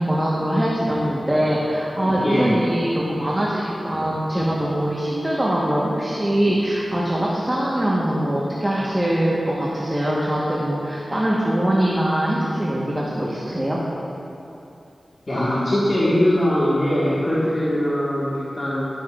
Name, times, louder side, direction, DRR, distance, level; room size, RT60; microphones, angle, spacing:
voice 1, 0.0-13.8, right 1 dB, 20° right, -6 dB, 1.2 m, -22 dB
voice 2, 2.2-2.6 15.3-18.9, left 1 dB, 40° left, -10 dB, 1.6 m, -21 dB
12.0 x 8.4 x 2.5 m, 2.8 s
wide cardioid pair, 60°, 0 cm